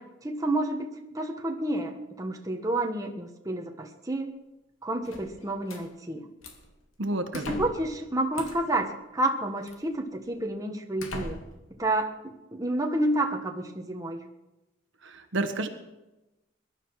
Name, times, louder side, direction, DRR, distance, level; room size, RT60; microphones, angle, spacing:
voice 1, 0.0-4.3 4.8-6.3 7.3-11.4 11.8-14.2, right 1 dB, 15° right, 3 dB, 1.3 m, -30 dB
sound 1, 5.0-5.8 6.4-6.7 7.3-7.9 8.3-8.8 9.7-9.8 10.4-10.5 11.0-11.7, left 2 dB, 85° left, 2.6 m, -39 dB
voice 2, 7.0-7.4 15.0-15.7, right 2 dB, 65° right, 7 dB, 1.4 m, -30 dB
21.5 x 11.5 x 4.8 m, 0.99 s
head